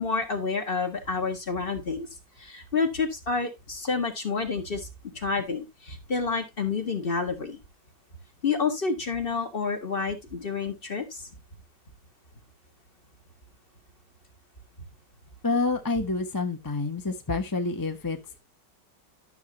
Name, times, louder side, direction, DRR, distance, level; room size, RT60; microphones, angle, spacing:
voice 1, 0.0-2.1 2.4-4.9 5.1-7.6 8.4-11.2, left 4 dB, 30° left, 1.7 m, -29 dB
voice 2, 15.4-18.4, left 3 dB, 15° left, 0.9 m, -28 dB
12.0 x 6.9 x 2.9 m
omnidirectional pair, 2.0 m